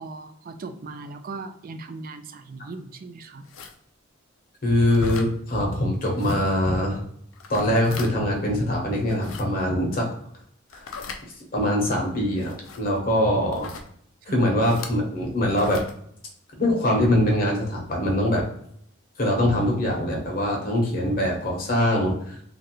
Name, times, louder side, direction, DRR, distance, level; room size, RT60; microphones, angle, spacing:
voice 1, 0.0-3.5 14.2-14.5, right 3 dB, 45° right, 9 dB, 0.3 m, -38 dB
sound 1, 3.4-3.7 4.9-5.3 6.2-6.4 7.3-8.1 9.0-9.4 10.7-11.2 12.4-12.8 13.5-13.9 14.6-14.9 15.5-15.9, left 5 dB, 80° left, 0.5 m, -39 dB
voice 2, 4.6-7.0 7.5-10.1 10.7-10.9 11.5-13.7 14.3-15.8 16.6-18.4 19.2-22.4, left 1 dB, 45° left, 0 dB, 0.9 m, -23 dB
3.1 x 2.5 x 2.9 m, 0.66 s
head